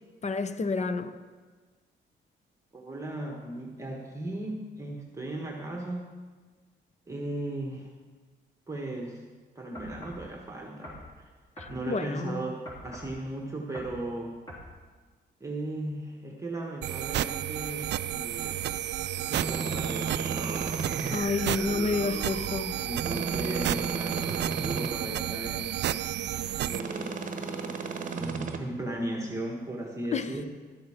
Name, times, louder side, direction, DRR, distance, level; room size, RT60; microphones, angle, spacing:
voice 1, 0.2-1.2 11.6-12.4 21.1-22.8 30.1-30.3, left 4 dB, 35° left, 0.7 m, -30 dB
voice 2, 2.7-6.2 7.1-7.9 8.7-9.3 9.5-11.3 11.7-14.4 15.4-18.8 19.1-20.8 21.6-25.8 26.6-27.3 28.1-30.5, right 1 dB, 15° right, 1.4 m, -37 dB
sound 1, 9.7-10.3 10.8-11.1 11.6-11.8 12.6-13.2 13.7-14.0 14.5-14.7, left 1 dB, 20° left, 3.7 m, -43 dB
sound 2, 16.8-26.8, right 12 dB, 60° right, 0.4 m, -32 dB
sound 3, 19.3-21.2 23.0-24.9 26.7-28.6, right 4 dB, 40° right, 1.0 m, -33 dB
12.5 x 7.8 x 5.0 m
cardioid pair, 90°, 20 cm